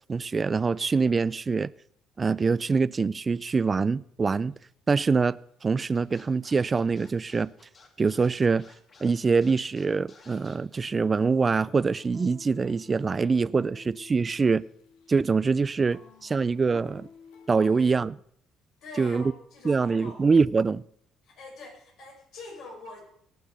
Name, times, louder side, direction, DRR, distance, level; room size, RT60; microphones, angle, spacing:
voice 1, 0.1-1.7 2.2-4.5 4.9-5.4 5.6-7.5 8.0-8.6 9.0-14.6 15.1-17.1 17.5-18.1 19.0-19.2 19.6-20.8, right 4 dB, 35° right, 0.4 m, -24 dB
sound 1, 4.5-4.6 5.3-5.4 6.2-7.4 7.6-7.9 8.2-9.8 10.1-17.5, left 5 dB, 85° left, 2.7 m, -53 dB
Scratching (performance technique), 5.8-10.5, left 4 dB, 45° left, 2.8 m, -54 dB
voice 2, 16.2-16.9 17.6-17.9 18.8-20.3 21.2-23.0, left 3 dB, 70° left, 5.5 m, -45 dB
18.0 x 6.7 x 6.6 m
supercardioid pair, 70°, 0 cm